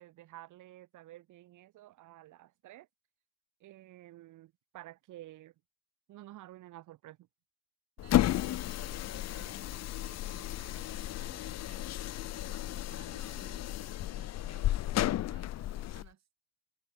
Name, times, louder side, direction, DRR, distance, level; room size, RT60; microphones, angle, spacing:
voice 1, 0.0-2.9 3.6-5.5 6.1-7.2, right 15 dB, 80° right, 1.3 m, -51 dB
sound 1, 8.0-16.1, left 13 dB, 60° left, 0.6 m, -33 dB
voice 2, 8.0-11.9 12.4-16.3, right 9 dB, 60° right, 5.3 m, -59 dB
cardioid pair, 90°, 30 cm